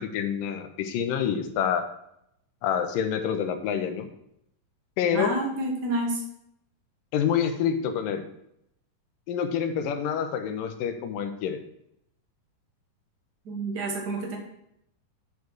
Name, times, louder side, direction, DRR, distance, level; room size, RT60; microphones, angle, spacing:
voice 1, 0.0-1.9 2.6-4.1 5.0-5.4 7.1-8.3 9.3-11.6, left 8 dB, 80° left, 7 dB, 2.4 m, -27 dB
voice 2, 5.1-6.2 13.4-14.4, right 2 dB, 75° right, 1 dB, 0.9 m, -29 dB
8.3 x 4.7 x 6.1 m, 0.77 s
omnidirectional pair, 4.0 m